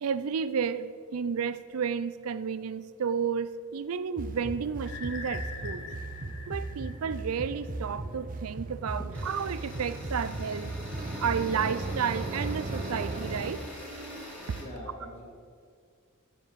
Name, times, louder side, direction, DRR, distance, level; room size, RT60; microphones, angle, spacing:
voice 1, 0.0-5.9 6.5-10.7 11.2-13.6 14.5-14.6, right 6 dB, 80° right, 14 dB, 0.5 m, -32 dB
sound 1, 4.2-13.5, right 2 dB, 40° right, 0.7 m, -37 dB
sound 2, 4.8-7.7, left 4 dB, 60° left, 1.4 m, -43 dB
sound 3, 9.1-14.6, left 1 dB, 5° left, 2.9 m, -43 dB
voice 2, 14.6-15.2, left 1 dB, 25° left, -4 dB, 2.6 m, -44 dB
14.0 x 5.1 x 5.7 m, 2.2 s
head